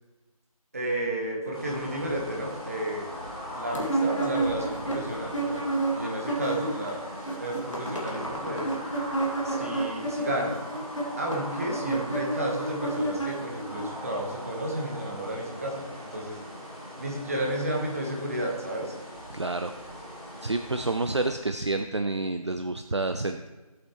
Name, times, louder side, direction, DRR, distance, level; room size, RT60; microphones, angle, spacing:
voice 1, 0.7-3.1 3.5-5.7 5.9-7.0 7.4-8.7 9.4-10.6 11.2-15.8 16.1-16.4 17.0-18.9, right 1 dB, 25° right, -1 dB, 1.3 m, -32 dB
sound 1, 1.5-21.3, equal, 10° left, 1.3 m, -40 dB
sound 2, 3.7-6.9 7.1-13.8, right 2 dB, 55° left, 2.3 m, -30 dB
voice 2, 19.3-19.7 20.4-23.5, right 2 dB, 50° right, 7 dB, 0.5 m, -29 dB
15.0 x 8.2 x 3.1 m, 1.2 s
figure-of-eight pair, 165°, 19 cm